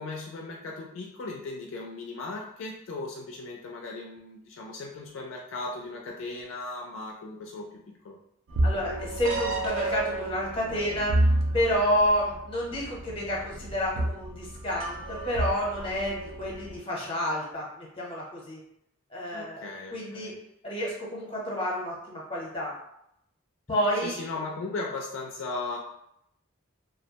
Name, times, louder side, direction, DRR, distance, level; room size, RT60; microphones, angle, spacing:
voice 1, 0.0-8.2 19.3-20.3 24.0-25.8, left 3 dB, 65° left, 0 dB, 0.3 m, -37 dB
sound 1, 8.5-16.8, right 1 dB, 65° right, 0.4 m, -30 dB
voice 2, 8.6-11.2 11.5-18.6 19.1-20.3 20.6-22.7 23.7-24.1, equal, 25° left, -3 dB, 0.7 m, -29 dB
2.3 x 2.1 x 2.8 m, 0.77 s
head